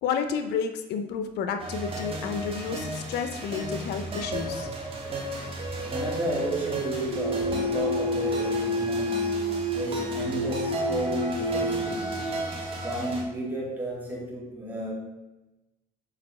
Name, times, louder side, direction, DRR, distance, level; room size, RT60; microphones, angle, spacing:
voice 1, 0.0-4.7, left 6 dB, 80° left, 7 dB, 0.6 m, -31 dB
sound 1, 1.6-13.2, right 2 dB, 35° right, 1.6 m, -34 dB
sound 2, 5.6-12.9, equal, 65° right, 0.9 m, -30 dB
voice 2, 5.9-9.3 9.7-12.2 12.7-14.9, right 1 dB, 10° right, -4 dB, 2.4 m, -33 dB
6.6 x 4.7 x 4.2 m, 1.0 s
cardioid pair, 110°, 17 cm